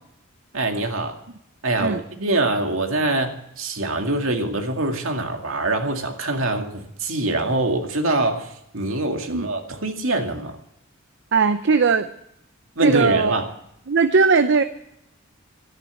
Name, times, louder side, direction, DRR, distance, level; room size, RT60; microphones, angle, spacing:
voice 1, 0.5-1.2 1.6-10.6 12.8-13.5, right 2 dB, 75° right, 4 dB, 2.2 m, -24 dB
voice 2, 11.3-12.1 12.8-13.3 13.9-14.6, right 5 dB, 60° right, 10 dB, 0.6 m, -18 dB
13.5 x 10.5 x 8.2 m, 0.76 s
head